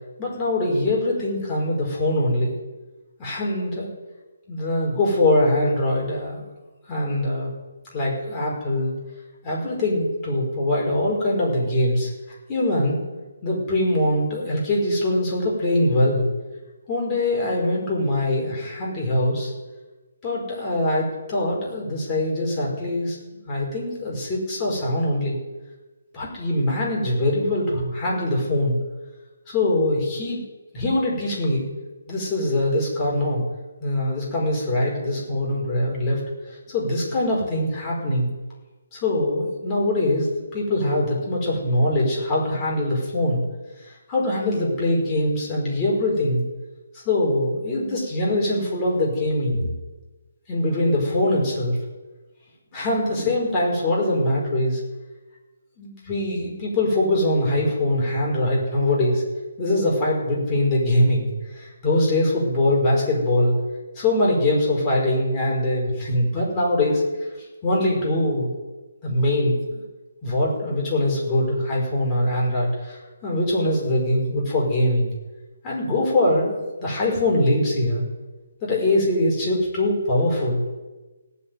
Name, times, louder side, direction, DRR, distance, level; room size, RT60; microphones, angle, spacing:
voice 1, 0.2-2.5 3.2-3.9 4.5-6.4 6.9-7.5 7.9-8.9 9.4-12.1 12.5-13.1 13.4-16.3 16.9-19.5 20.2-23.2 23.5-25.4 26.1-28.8 29.5-30.4 30.7-31.7 32.1-33.4 33.8-36.2 36.5-38.3 38.9-43.4 43.8-46.4 46.9-49.6 50.5-51.8 52.7-54.8 55.8-59.2 59.6-63.5 63.9-67.0 67.6-68.5 69.0-69.8 70.2-75.1 75.6-78.0 78.6-80.6, left 1 dB, 20° left, -3 dB, 5.3 m, -23 dB
17.5 x 8.6 x 9.4 m, 1.2 s
hypercardioid pair, 165°, 0 cm